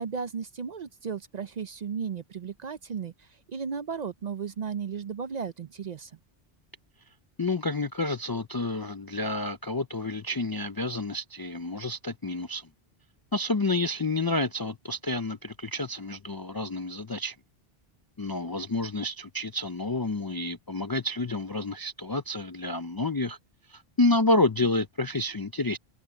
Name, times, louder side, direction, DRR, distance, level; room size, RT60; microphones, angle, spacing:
voice 1, 0.0-6.1, right 6 dB, 50° right, 0.6 m, -35 dB
voice 2, 7.4-12.7 13.3-17.4 18.2-23.4 23.7-25.8, left 2 dB, 35° left, 0.3 m, -29 dB
omnidirectional pair, 1.1 m